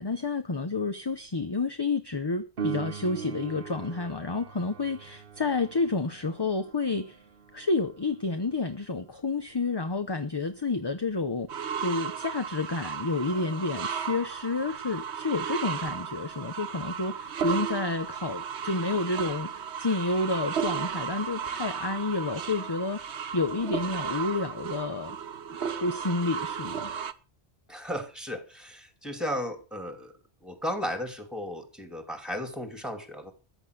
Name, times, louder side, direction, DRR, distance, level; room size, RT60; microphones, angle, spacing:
voice 1, 0.0-7.2 7.5-25.2 25.8-26.9, left 3 dB, 25° left, 0.8 m, -30 dB
Piano, 2.6-13.0 20.5-20.6, right 6 dB, 55° right, 1.2 m, -42 dB
sound 1, 11.5-27.1, right 7 dB, 90° right, 1.2 m, -34 dB
voice 2, 27.7-30.1 30.4-33.3, equal, ahead, 2.6 m, -35 dB
14.5 x 8.1 x 6.5 m
omnidirectional pair, 1.1 m